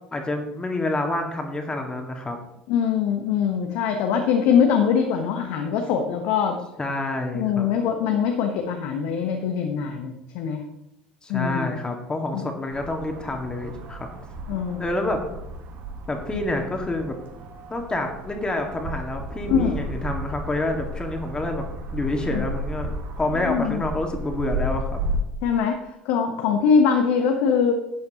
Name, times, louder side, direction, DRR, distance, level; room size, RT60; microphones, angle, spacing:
voice 1, 0.1-2.4 6.8-7.7 11.2-14.1 14.8-15.2 16.1-17.2 17.7-21.6 21.9-25.0, left 2 dB, 20° left, 3 dB, 1.8 m, -28 dB
voice 2, 2.7-6.6 7.3-10.6 11.3-11.7 12.3-12.4 14.5-14.8 16.3-16.5 19.5-19.8 22.3-22.5 23.4-23.8 25.4-25.7 26.0-27.7, left 7 dB, 60° left, 4 dB, 1.1 m, -22 dB
sound 1, 12.7-25.2, right 1 dB, 50° right, 1.7 m, -33 dB
12.5 x 9.1 x 2.9 m, 0.89 s
figure-of-eight pair, 65°, 5 cm